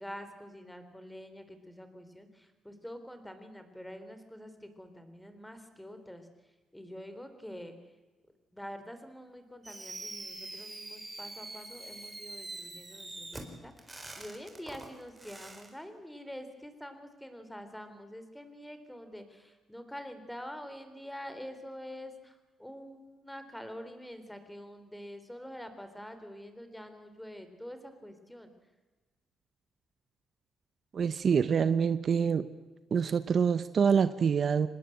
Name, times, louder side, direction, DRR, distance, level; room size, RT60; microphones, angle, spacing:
voice 1, 0.0-6.3 6.7-7.7 8.5-28.5, equal, 5° left, 9 dB, 3.6 m, -46 dB
Fireworks, 9.6-15.7, right 2 dB, 20° right, 4.0 m, -44 dB
voice 2, 30.9-32.5 32.9-34.7, right 6 dB, 50° right, 13 dB, 0.8 m, -26 dB
25.0 x 20.0 x 8.0 m, 1.2 s
cardioid pair, 90°, 0 cm